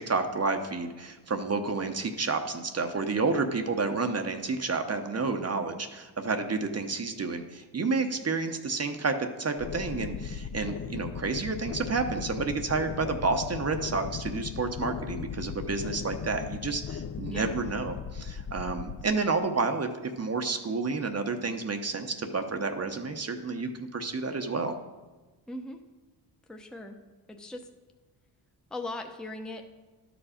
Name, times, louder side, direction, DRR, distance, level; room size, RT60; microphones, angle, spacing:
voice 1, 0.0-19.9 20.2-24.7, right 4 dB, 35° right, 6 dB, 0.8 m, -30 dB
sound 1, 9.6-19.0, left 7 dB, 35° left, 0.4 m, -37 dB
voice 2, 17.3-17.6 25.5-25.8 26.5-27.0 27.3-27.7 28.7-29.6, left 2 dB, ahead, 4 dB, 0.8 m, -39 dB
11.5 x 5.0 x 5.0 m, 1.2 s
cardioid pair, 70°, 46 cm